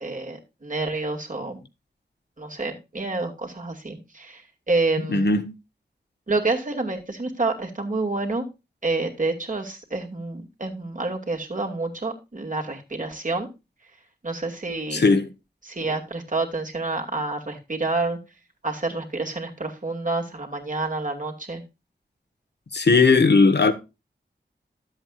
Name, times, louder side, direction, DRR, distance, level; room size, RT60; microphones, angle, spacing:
voice 1, 0.0-1.6 2.4-5.3 6.3-8.4 8.8-13.5 14.2-15.1 15.6-18.2 18.6-21.6, right 3 dB, 50° right, 2.4 m, -28 dB
voice 2, 5.1-5.5 14.9-15.3 22.7-23.7, left 4 dB, 75° left, 1.3 m, -18 dB
12.5 x 8.0 x 2.4 m
wide cardioid pair, 65°, 18 cm